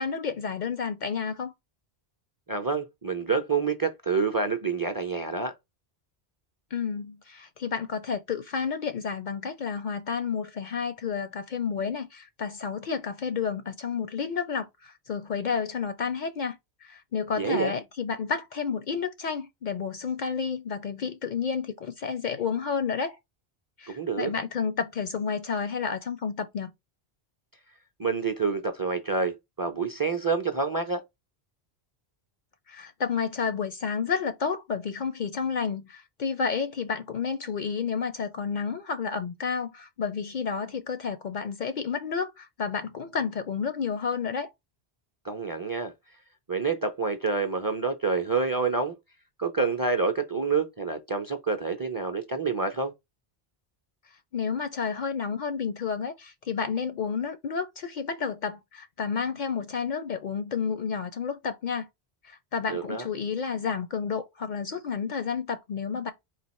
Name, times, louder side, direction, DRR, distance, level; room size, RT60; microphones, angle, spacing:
voice 1, 0.0-1.5 6.7-23.2 23.8-26.7 32.7-44.5 54.3-61.9 62.2-66.1, left 6 dB, 55° left, 0.6 m, -31 dB
voice 2, 2.5-5.5 17.4-17.7 23.9-24.3 28.0-31.0 45.2-45.9 46.5-48.9 49.4-52.9 62.7-63.1, right 4 dB, 25° right, 0.5 m, -28 dB
4.2 x 2.4 x 4.2 m
omnidirectional pair, 1.1 m